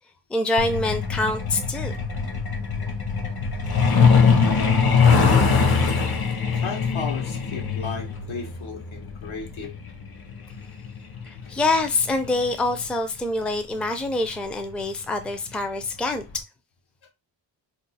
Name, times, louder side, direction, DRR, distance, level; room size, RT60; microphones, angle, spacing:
voice 1, 0.3-2.0 11.3-16.4, left 2 dB, ahead, 0.4 m, -25 dB
Truck, 0.6-12.9 14.1-14.3 14.7-14.8 15.2-15.5 15.8-15.9 16.4-16.5, left 5 dB, 50° left, 0.7 m, -22 dB
voice 2, 6.6-9.8, left 5 dB, 80° left, 1.0 m, -35 dB
2.6 x 2.4 x 4.0 m
wide cardioid pair, 100°, 47 cm